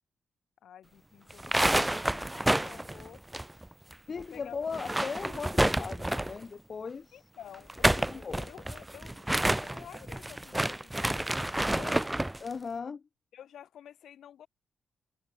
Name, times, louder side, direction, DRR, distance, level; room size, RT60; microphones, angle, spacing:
voice 1, 0.6-3.2 4.1-4.7 7.1-12.3 13.3-14.5, left 10 dB, 70° left, 7.4 m, -51 dB
sound 1, 1.3-3.9 4.2-4.3 4.7-6.4 7.5-12.4, right 1 dB, 10° right, 0.4 m, -29 dB
voice 2, 4.1-7.2 8.1-8.4 12.4-13.0, left 5 dB, 40° left, 1.0 m, -38 dB
open air
cardioid pair, 115°, 0 cm